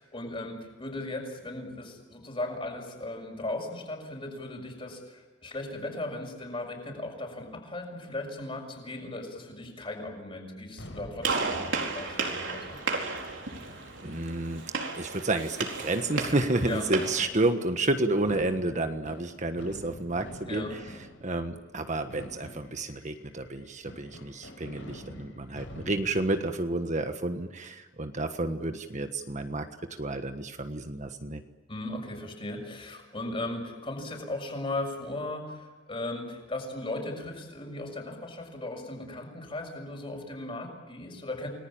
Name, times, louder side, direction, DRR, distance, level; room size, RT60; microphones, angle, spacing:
voice 1, 0.0-12.8 16.6-16.8 20.5-20.7 31.7-41.5, left 2 dB, 30° left, 3 dB, 6.4 m, -37 dB
Fireworks, 10.8-26.9, left 1 dB, 75° left, 5.8 m, -48 dB
Gunshot gunfire, 11.2-17.3, right 4 dB, 80° right, 4.6 m, -33 dB
voice 2, 14.0-14.6 14.9-20.8 21.2-29.7 30.0-31.4, right 2 dB, 40° right, 7 dB, 1.4 m, -30 dB
29.5 x 20.0 x 8.9 m, 1.3 s
head